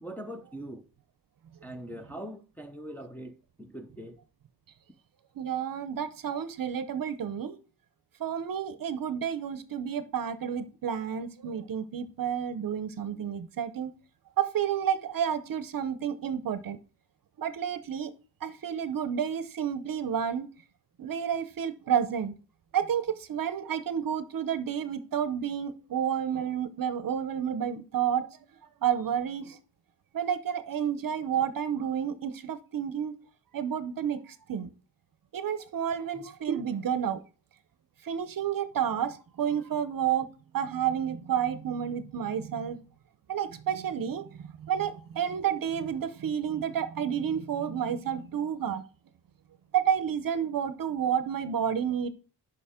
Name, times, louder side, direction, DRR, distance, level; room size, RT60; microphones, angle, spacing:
voice 1, 0.0-0.8 1.6-4.2 36.1-36.2, right 1 dB, 5° left, 0.6 m, -42 dB
voice 2, 5.4-7.6 8.2-13.9 14.4-16.8 17.4-18.1 18.4-20.5 21.0-22.3 22.7-28.3 28.8-29.6 30.1-33.1 33.5-34.7 35.3-37.2 38.0-40.3 40.5-42.8 43.3-48.8 49.7-52.1, right 8 dB, 55° right, 0.7 m, -30 dB
6.9 x 5.5 x 3.6 m
wide cardioid pair, 140°, 40 cm